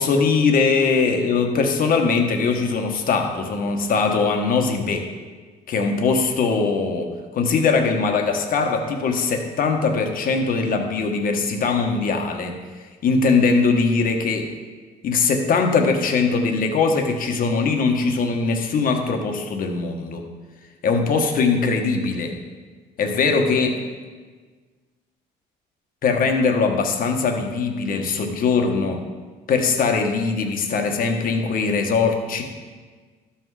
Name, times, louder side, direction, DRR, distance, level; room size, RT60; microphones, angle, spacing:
voice 1, 0.0-5.1 5.7-12.6 13.0-14.5 15.0-20.2 20.8-22.3 23.0-23.8 26.0-29.0 29.5-32.4, left 4 dB, 55° left, 4 dB, 1.3 m, -21 dB
12.5 x 5.8 x 4.8 m, 1.4 s
cardioid pair, 110°, 17 cm